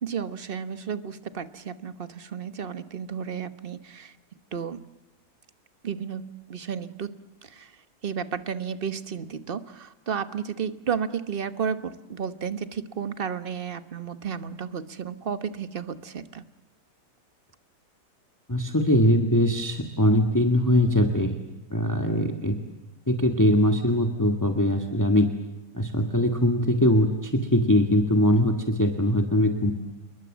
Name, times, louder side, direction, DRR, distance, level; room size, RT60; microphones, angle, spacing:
voice 1, 0.0-4.2 4.5-4.9 5.8-16.4, right 7 dB, 40° right, 12 dB, 1.2 m, -33 dB
voice 2, 18.5-21.4 21.7-22.6 23.1-25.3 25.7-29.7, left 1 dB, 10° left, 5 dB, 1.8 m, -21 dB
28.5 x 22.0 x 7.4 m, 0.98 s
omnidirectional pair, 1.7 m